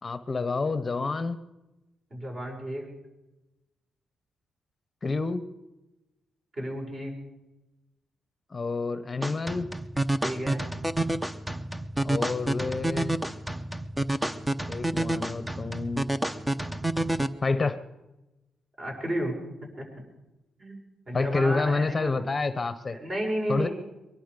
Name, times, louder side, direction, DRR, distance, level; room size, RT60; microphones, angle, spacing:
voice 1, 0.0-1.4 5.0-5.4 8.5-9.7 12.0-13.2 14.6-16.1 17.4-17.8 21.1-23.0 23.5-23.7, left 3 dB, 30° left, 11 dB, 0.8 m, -28 dB
voice 2, 2.1-2.9 6.5-7.2 10.2-10.6 18.8-19.9 20.6-20.8 21.1-22.1 22.9-23.7, right 1 dB, 40° right, 0 dB, 6.0 m, -32 dB
sound 1, 9.2-17.3, right 1 dB, 10° right, 0.8 m, -29 dB
22.5 x 11.5 x 5.2 m, 1.0 s
cardioid pair, 85°, 0 cm